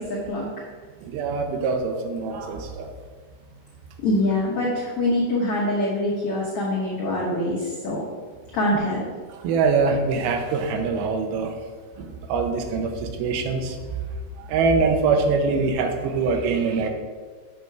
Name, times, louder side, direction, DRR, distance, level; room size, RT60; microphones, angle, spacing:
voice 1, 0.1-0.5 4.0-8.0 8.5-9.0, left 1 dB, 80° left, -5 dB, 1.3 m, -24 dB
voice 2, 1.1-2.9 9.4-11.5 12.0-12.9 13.2-13.8 14.5-16.9, right 4 dB, 85° right, 4 dB, 2.6 m, -23 dB
7.5 x 5.6 x 4.6 m, 1.5 s
omnidirectional pair, 4.4 m